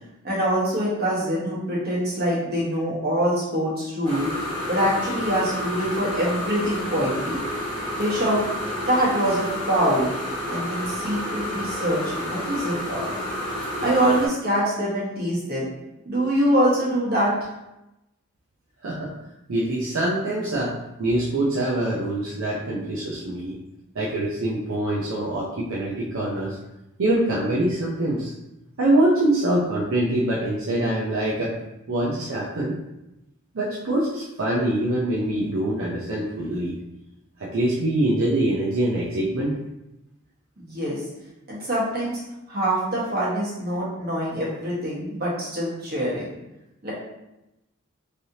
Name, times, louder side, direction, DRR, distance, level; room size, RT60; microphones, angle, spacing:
voice 1, 0.2-4.3 4.7-7.4 8.0-8.4 8.9-10.1 10.5-13.1 13.8-15.7 16.0-17.3 40.6-41.0 41.5-42.2 42.5-46.3 46.8-46.9, equal, 50° right, -7 dB, 1.3 m, -24 dB
sound 1, 4.0-14.3, left 1 dB, 20° left, 0.9 m, -30 dB
voice 2, 19.5-23.6 23.9-26.6 27.0-28.3 28.8-31.5 31.9-32.8 33.5-36.8 37.4-39.6, right 1 dB, 75° right, -6 dB, 0.6 m, -24 dB
3.3 x 2.7 x 2.7 m, 0.92 s
head